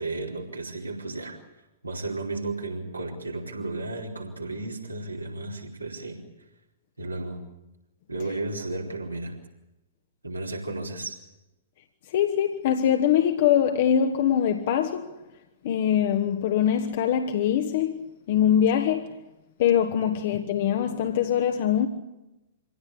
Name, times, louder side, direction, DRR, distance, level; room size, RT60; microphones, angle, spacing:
voice 1, 0.0-1.4 1.8-6.2 7.0-7.4 8.1-9.4 10.2-11.2 20.0-20.1, right 2 dB, 80° right, 4.7 m, -33 dB
voice 2, 12.1-15.2 15.6-19.2 19.6-21.9, left 9 dB, 50° left, 1.4 m, -23 dB
25.5 x 17.0 x 8.7 m
figure-of-eight pair, 110°, 0 cm